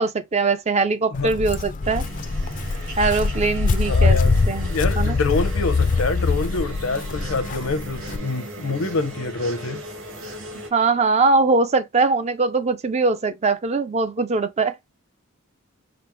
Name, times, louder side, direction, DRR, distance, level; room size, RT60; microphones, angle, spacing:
voice 1, 0.0-2.0 3.0-4.2 4.5-5.2 10.7-14.7, right 3 dB, 30° right, 0.4 m, -21 dB
Walk footsteps, 1.1-8.2, left 4 dB, 40° left, 0.4 m, -23 dB
sound 1, 1.8-10.7, right 2 dB, 80° right, 2.0 m, -37 dB
voice 2, 3.8-4.3 4.7-9.8, left 3 dB, 75° left, 0.7 m, -26 dB
5.1 x 2.0 x 4.4 m
head